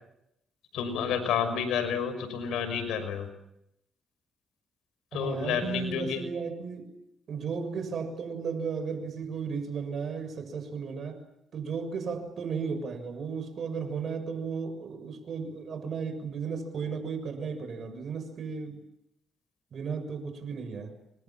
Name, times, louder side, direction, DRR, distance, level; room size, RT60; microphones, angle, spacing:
voice 1, 0.7-3.3 5.1-6.2, left 7 dB, 85° left, 10 dB, 6.0 m, -30 dB
voice 2, 5.1-6.8 7.3-11.2 11.5-18.8 19.7-20.9, right 5 dB, 55° right, 9 dB, 6.8 m, -34 dB
28.5 x 24.5 x 7.4 m, 0.81 s
cardioid pair, 90°, 0 cm